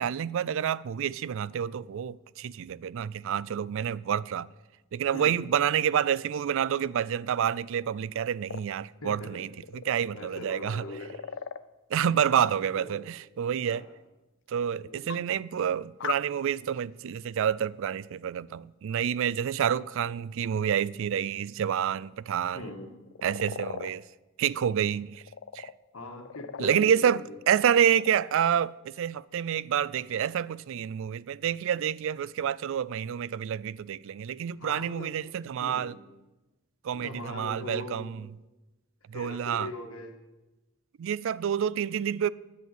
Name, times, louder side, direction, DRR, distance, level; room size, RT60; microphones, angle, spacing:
voice 1, 0.0-4.5 4.9-9.5 9.9-10.8 11.9-13.8 14.5-22.7 23.2-24.0 24.4-25.2 25.5-25.7 26.6-27.2 27.5-35.9 36.8-38.2 39.1-39.7 41.0-42.3, right 8 dB, 65° right, 0.4 m, -28 dB
voice 2, 5.1-5.4 9.0-9.4 10.1-11.2 12.8-13.0 13.7-13.9 14.8-15.3 22.5-22.9 25.9-27.2 34.6-35.1 35.6-36.0 36.9-38.1 39.1-40.2, left 1 dB, 80° left, 1.9 m, -41 dB
sound 1, 8.5-8.6 9.2-9.9 10.7-11.6 13.7-13.8 15.1-15.2 16.0-16.1 23.0-23.9 25.1-25.7 26.1-26.9 27.7-28.3, left 7 dB, 60° left, 0.5 m, -38 dB
9.8 x 8.2 x 9.2 m
head